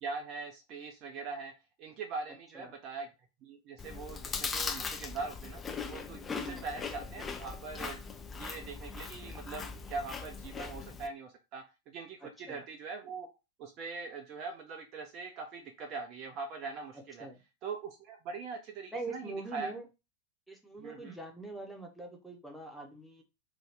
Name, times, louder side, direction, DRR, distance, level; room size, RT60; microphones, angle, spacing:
voice 1, 0.0-1.5 1.8-3.1 3.4-5.6 5.9-13.3 13.6-17.3 17.6-19.7 20.8-21.1, right 4 dB, 35° right, 3 dB, 0.5 m, -42 dB
Chewing mastication, 3.8-11.1, left 5 dB, 20° left, 0.4 m, -40 dB
voice 2, 18.9-19.9 20.5-23.2, right 2 dB, ahead, 1 dB, 0.8 m, -43 dB
2.7 x 2.3 x 3.3 m, 0.27 s
figure-of-eight pair, 90°, 0 cm